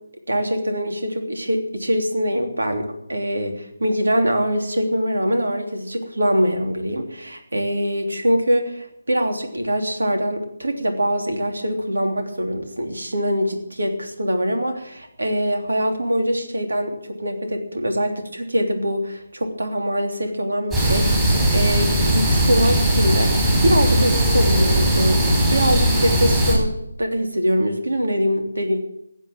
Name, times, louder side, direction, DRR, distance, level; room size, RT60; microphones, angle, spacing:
voice 1, 0.3-21.1 21.5-26.7 27.0-28.8, equal, 70° right, 4 dB, 3.2 m, -23 dB
sound 1, 20.7-26.5, right 1 dB, 15° right, 5.9 m, -18 dB
15.5 x 8.4 x 9.1 m, 0.79 s
figure-of-eight pair, 150°, 0 cm